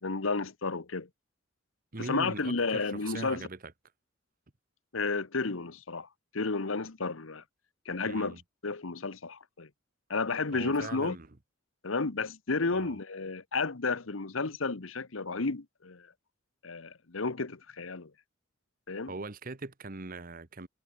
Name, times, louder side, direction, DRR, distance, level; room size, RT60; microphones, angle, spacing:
voice 1, 0.0-1.1 2.0-3.5 4.9-6.1 6.3-7.4 7.8-8.3 8.6-9.7 10.1-11.2 11.8-16.1 16.6-18.1 18.9-19.1, left 3 dB, 80° left, 1.2 m, -32 dB
voice 2, 1.9-3.7 8.0-8.4 10.5-11.4 12.7-13.0 19.1-20.7, right 3 dB, 45° right, 1.2 m, -41 dB
head